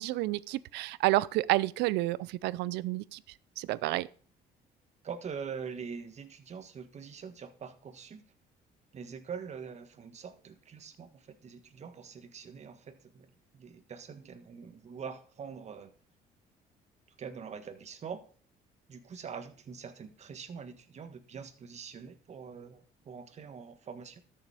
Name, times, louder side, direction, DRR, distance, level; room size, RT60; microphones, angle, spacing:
voice 1, 0.0-3.2 3.6-4.1, right 18 dB, 85° right, 0.5 m, -30 dB
voice 2, 5.0-8.2 8.9-15.9 17.2-18.2 18.9-24.2, right 6 dB, 40° right, 1.5 m, -44 dB
13.0 x 7.0 x 4.9 m
cardioid pair, 110°, 17 cm